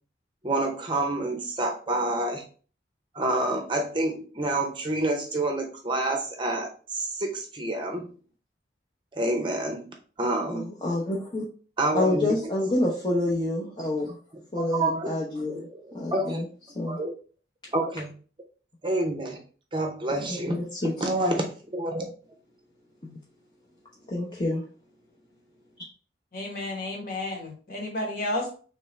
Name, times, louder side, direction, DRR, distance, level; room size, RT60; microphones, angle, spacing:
voice 1, 0.4-2.4 3.1-8.1 9.1-9.9 10.2-10.7 11.8-12.3 14.6-15.1 15.5-16.5 16.9-17.1 17.7-18.1 18.8-19.4 19.7-20.6 21.0-22.1, right 2 dB, 25° right, 3 dB, 0.6 m, -28 dB
voice 2, 10.5-11.5 11.9-14.2 14.5-15.7 15.9-16.5 16.7-17.0 20.3-20.9 23.0-23.2 24.1-24.6, left 2 dB, 25° left, -4 dB, 0.8 m, -28 dB
voice 3, 26.3-28.5, left 1 dB, 50° left, 0 dB, 1.4 m, -32 dB
3.5 x 3.2 x 4.2 m, 0.40 s
head